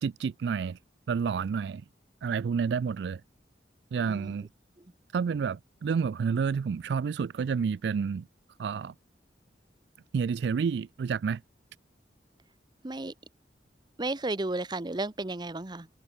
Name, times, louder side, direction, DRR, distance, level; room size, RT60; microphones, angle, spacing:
voice 1, 0.0-0.8 1.1-1.8 2.2-3.2 3.9-4.5 5.1-8.3 8.6-8.9 10.1-11.4, right 6 dB, 65° right, 0.3 m, -29 dB
voice 2, 4.0-4.4 4.8-4.9 12.8-13.1 14.0-15.9, right 2 dB, 25° right, 0.8 m, -33 dB
head